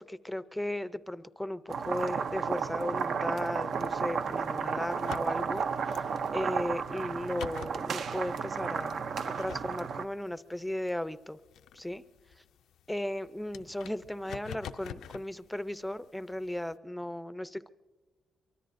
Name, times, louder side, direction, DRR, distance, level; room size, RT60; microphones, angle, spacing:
voice 1, 0.0-6.0 6.3-11.4 11.7-12.0 12.9-17.7, left 1 dB, 5° left, 14 dB, 0.5 m, -36 dB
sound 1, 1.7-10.0, right 6 dB, 60° right, 0.5 m, -33 dB
sound 2, 3.7-16.7, left 10 dB, 90° left, 0.4 m, -50 dB
24.0 x 23.5 x 2.6 m, 1.3 s
cardioid pair, 110°, 0 cm